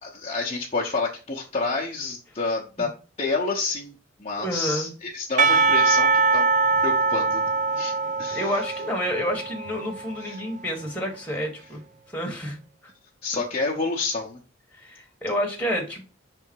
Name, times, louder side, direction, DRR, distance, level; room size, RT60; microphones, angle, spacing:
voice 1, 0.0-2.9 3.2-3.9 4.2-6.5 6.8-7.5 7.8-7.9 8.2-8.5 10.2-10.4 13.2-14.4, left 3 dB, 30° left, 0.9 m, -28 dB
voice 2, 4.4-4.9 8.3-11.8 12.1-12.9 14.7-16.0, equal, 5° left, 1.5 m, -29 dB
Percussion / Church bell, 5.4-10.4, right 4 dB, 40° right, 0.4 m, -23 dB
5.8 x 3.5 x 4.6 m
head